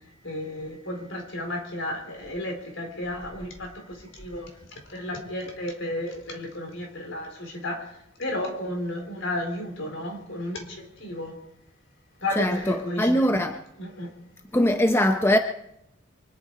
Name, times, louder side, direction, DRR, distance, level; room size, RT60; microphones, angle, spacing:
voice 1, 0.2-4.5 4.9-7.9 8.2-11.3 12.2-13.3 13.8-14.1, left 1 dB, 65° left, 4.2 m, -33 dB
voice 2, 12.4-13.6 14.5-15.4, equal, 10° left, 0.7 m, -21 dB
24.0 x 11.5 x 4.8 m
head